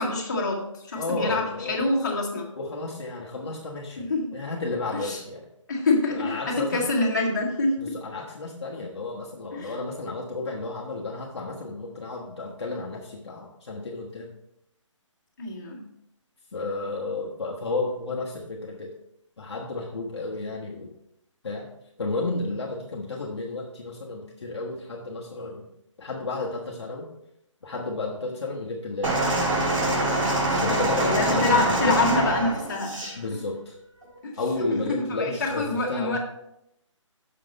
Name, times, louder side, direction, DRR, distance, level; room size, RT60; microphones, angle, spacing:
voice 1, 0.0-2.5 4.0-4.3 5.0-5.2 5.7-8.0 9.5-9.8 15.4-15.8 31.0-33.0 34.2-34.4 34.9-36.2, left 2 dB, 35° left, -3 dB, 1.8 m, -26 dB
voice 2, 1.0-1.9 2.6-5.5 6.1-6.8 7.8-14.3 16.5-18.9 19.4-20.9 21.4-21.7 22.0-25.7 26.0-27.1 27.6-29.3 30.5-31.9 33.2-33.7 34.4-36.2, left 3 dB, 55° left, -3 dB, 1.4 m, -32 dB
sound 1, 29.0-33.2 34.0-34.2, right 1 dB, 85° right, 3.1 m, -25 dB
6.7 x 6.0 x 5.4 m, 0.82 s
hypercardioid pair, 180°, 16 cm